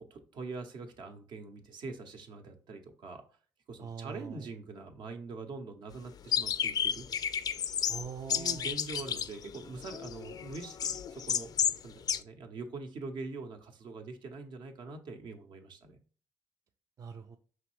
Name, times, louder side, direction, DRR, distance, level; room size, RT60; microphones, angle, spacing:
voice 1, 0.0-3.2 3.7-7.1 8.3-11.5 11.8-16.0, right 3 dB, 65° right, 5 dB, 0.8 m, -43 dB
voice 2, 3.8-4.5 7.9-8.7 17.0-17.4, right 6 dB, 45° right, 5 dB, 0.4 m, -43 dB
sound 1, 6.3-11.8 12.1-12.2, left 8 dB, 50° left, 0.3 m, -32 dB
4.9 x 3.1 x 3.1 m, 0.41 s
supercardioid pair, 60°, 8 cm